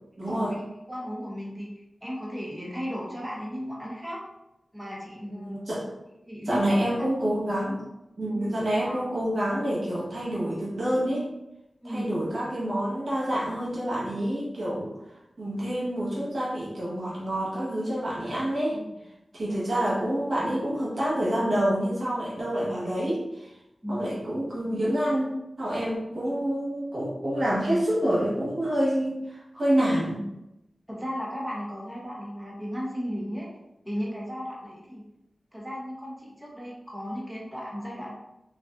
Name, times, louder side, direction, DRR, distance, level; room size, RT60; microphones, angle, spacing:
voice 1, 0.2-0.5 5.3-5.8 6.5-7.8 8.2-11.2 11.8-14.9 15.4-18.8 19.3-23.5 23.9-25.3 25.6-30.2, equal, 70° right, -7 dB, 1.0 m, -27 dB
voice 2, 0.9-1.7 2.0-4.2 4.7-5.6 6.3-6.6 8.3-8.5 8.8-9.1 11.8-12.1 18.7-19.0 23.8-24.1 30.9-33.5 33.8-35.0 35.5-38.1, equal, 5° right, -4 dB, 0.8 m, -35 dB
2.4 x 2.4 x 2.4 m, 0.91 s
cardioid pair, 50°, 0 cm